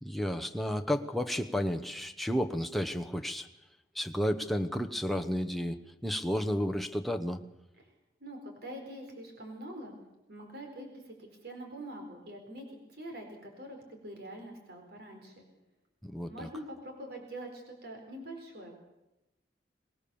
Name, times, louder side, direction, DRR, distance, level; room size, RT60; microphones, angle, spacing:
voice 1, 0.0-3.5 3.9-7.4 16.0-16.5, equal, ahead, 5 dB, 0.9 m, -32 dB
voice 2, 8.2-9.9 10.3-15.5 16.3-18.8, right 1 dB, 65° right, 3 dB, 4.4 m, -44 dB
24.0 x 19.0 x 7.1 m, 0.92 s
head